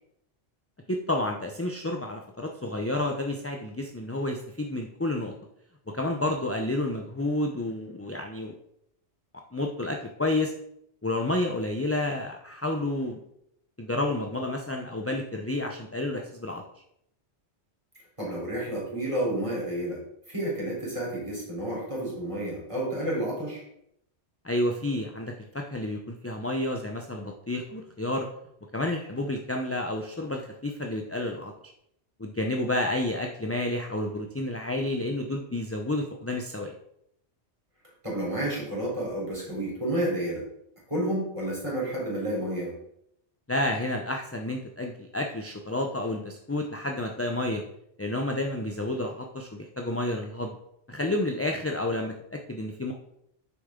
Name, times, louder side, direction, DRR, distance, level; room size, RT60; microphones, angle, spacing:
voice 1, 0.9-5.3 5.9-8.5 9.5-10.5 11.0-13.2 13.8-16.6 24.4-28.3 28.7-31.5 32.2-36.7 43.5-47.6 48.0-50.6 50.9-52.9, left 1 dB, 15° left, 2 dB, 0.6 m, -30 dB
voice 2, 18.2-20.0 20.3-23.6 38.0-40.4 40.9-42.7, right 1 dB, 25° right, -4 dB, 3.9 m, -30 dB
9.3 x 6.7 x 3.8 m, 0.75 s
omnidirectional pair, 1.2 m